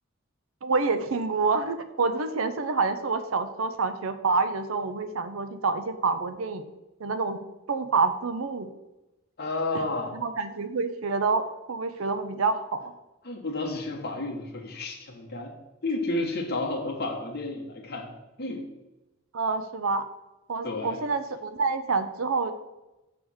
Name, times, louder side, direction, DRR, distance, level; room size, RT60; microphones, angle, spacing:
voice 1, 0.6-6.7 7.0-7.4 7.7-8.7 10.1-12.9 19.3-20.0 20.5-22.5, right 4 dB, 75° right, 10 dB, 0.6 m, -27 dB
voice 2, 9.4-10.2 13.2-15.5 15.8-18.1 18.4-18.7 20.6-21.0, left 2 dB, 50° left, 0 dB, 1.4 m, -31 dB
6.9 x 3.5 x 6.2 m, 0.99 s
head